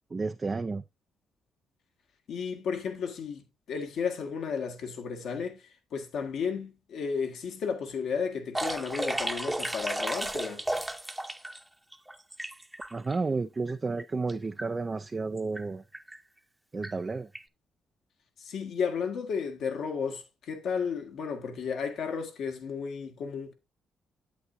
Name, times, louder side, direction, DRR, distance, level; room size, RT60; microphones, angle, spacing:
voice 1, 0.1-0.8 12.9-15.8 16.7-17.3, right 3 dB, 30° right, 0.4 m, -31 dB
voice 2, 2.3-10.6 18.4-23.5, left 6 dB, 75° left, 1.7 m, -33 dB
sound 1, 8.5-11.6 11.9-13.1 13.7-13.8 14.0-14.3 14.6-14.7 15.4-15.6 15.9-16.2 16.8-16.9 17.3-17.4, right 1 dB, 10° right, 0.8 m, -33 dB
8.4 x 8.3 x 2.6 m
cardioid pair, 85°, 0 cm